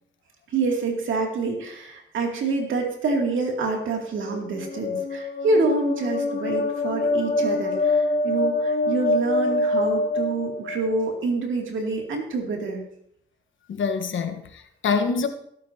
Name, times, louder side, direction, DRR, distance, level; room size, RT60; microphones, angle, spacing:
voice 1, 0.5-12.8, right 3 dB, 85° right, 1 dB, 2.5 m, -26 dB
sound 1, 4.2-11.0, left 2 dB, 50° left, 2.1 m, -25 dB
voice 2, 13.7-15.3, left 5 dB, 80° left, 7 dB, 1.2 m, -25 dB
17.5 x 8.5 x 2.8 m, 0.73 s
supercardioid pair, 50°, 20 cm